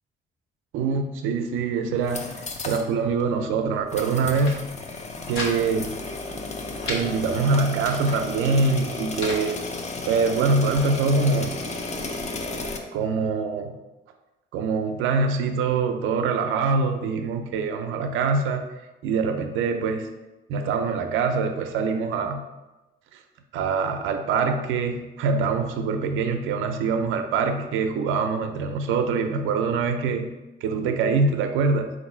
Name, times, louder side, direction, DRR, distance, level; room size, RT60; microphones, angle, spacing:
voice 1, 0.7-2.3 2.6-4.6 5.3-6.0 6.9-9.6 10.1-11.6 12.9-13.8 14.5-18.6 19.0-20.1 20.5-22.4 23.1-23.2 23.5-30.3 30.6-31.9, right 4 dB, 90° right, 6 dB, 0.5 m, -24 dB
sound 1, 1.9-2.9 3.2-3.3 3.9-12.8, left 3 dB, 35° left, 0.6 m, -33 dB
sound 2, 4.2-4.6 4.9-5.5 5.8-5.9 6.3-7.0 7.6-8.2 8.8-9.4 10.1-10.9, left 2 dB, 85° left, 1.0 m, -35 dB
4.0 x 2.6 x 4.2 m, 1.1 s
cardioid pair, 90°, 20 cm